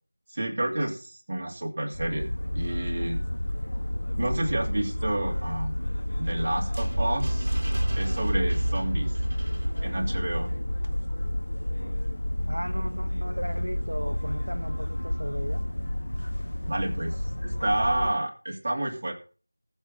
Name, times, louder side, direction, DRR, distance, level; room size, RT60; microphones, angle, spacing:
voice 1, 0.3-3.2 4.2-5.8 6.2-7.5 7.9-9.2 9.8-10.5 16.7-19.1, right 1 dB, 30° right, 2.4 m, -30 dB
sound 1, 1.9-18.1, left 1 dB, 65° left, 1.3 m, -30 dB
sound 2, 5.9-11.0, right 1 dB, 45° right, 2.3 m, -30 dB
voice 2, 12.5-15.6, equal, 80° right, 1.0 m, -36 dB
19.0 x 7.2 x 3.9 m
figure-of-eight pair, 175°, 0 cm